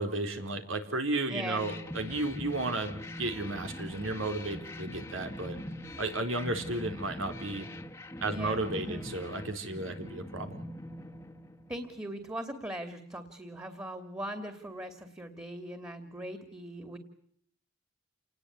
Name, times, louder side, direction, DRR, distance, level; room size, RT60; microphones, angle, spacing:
voice 1, 0.0-5.6 6.0-7.7 8.2-10.6, right 2 dB, 85° right, 6 dB, 4.2 m, -33 dB
voice 2, 1.3-1.7 8.3-9.1 11.7-17.0, right 1 dB, 15° right, 9 dB, 2.6 m, -40 dB
sound 1, 1.5-12.1, left 1 dB, 15° left, 1.5 m, -42 dB
29.0 x 20.0 x 8.5 m, 0.65 s
head